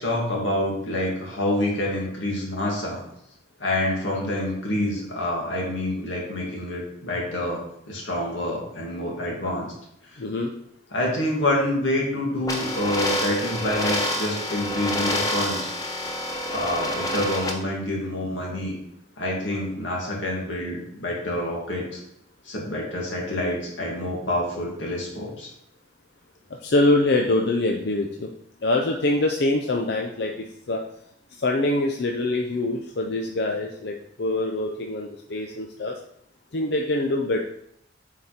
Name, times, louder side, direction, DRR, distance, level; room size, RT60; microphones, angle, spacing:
voice 1, 0.0-3.0 3.6-7.6 7.9-9.7 10.9-15.7 16.5-18.8 19.2-22.0 22.4-25.5, left 1 dB, 90° left, -2 dB, 2.3 m, -27 dB
voice 2, 10.2-10.5 26.6-28.3 28.6-30.3 30.7-30.8 31.4-35.9 36.5-37.4, left 2 dB, 60° left, 1 dB, 0.6 m, -24 dB
sound 1, 12.5-17.5, left 1 dB, 20° left, 0.8 m, -27 dB
7.5 x 4.1 x 4.3 m, 0.75 s
head